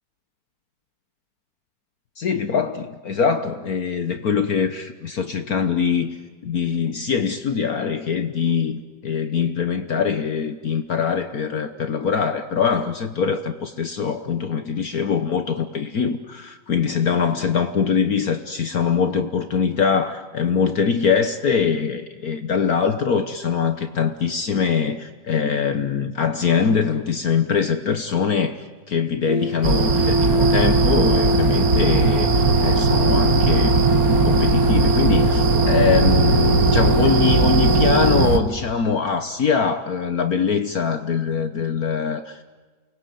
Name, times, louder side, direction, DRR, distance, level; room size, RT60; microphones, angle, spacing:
voice 1, 2.2-6.2 6.4-42.4, left 6 dB, 55° left, 1.5 m, -23 dB
sound 1, 29.2-38.3, left 1 dB, 15° right, 3.4 m, -23 dB
sound 2, 29.6-38.4, right 4 dB, 50° right, 1.9 m, -19 dB
29.0 x 20.5 x 9.4 m
omnidirectional pair, 2.0 m